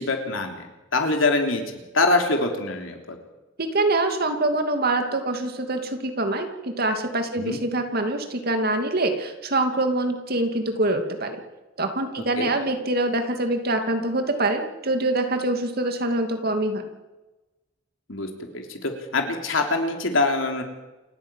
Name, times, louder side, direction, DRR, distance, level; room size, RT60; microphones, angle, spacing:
voice 1, 0.0-1.6 1.9-3.2 7.4-7.6 12.4-12.5 18.1-20.6, left 3 dB, 75° left, 4 dB, 3.4 m, -24 dB
voice 2, 3.6-11.4 11.8-16.9, right 2 dB, 50° right, 6 dB, 2.7 m, -25 dB
28.5 x 10.5 x 9.1 m, 1.1 s
head